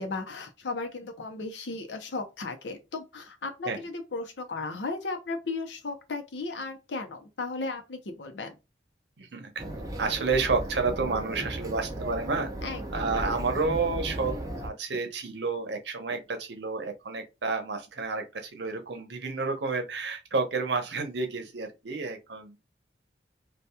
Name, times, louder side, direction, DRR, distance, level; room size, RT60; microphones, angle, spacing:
voice 1, 0.0-8.6 12.6-13.1, left 3 dB, 80° left, 0.7 m, -35 dB
voice 2, 9.2-12.5 12.9-14.4 14.6-22.6, right 4 dB, 70° right, 0.7 m, -30 dB
sound 1, 9.6-14.7, right 1 dB, 20° right, 0.4 m, -35 dB
2.8 x 2.3 x 2.2 m
head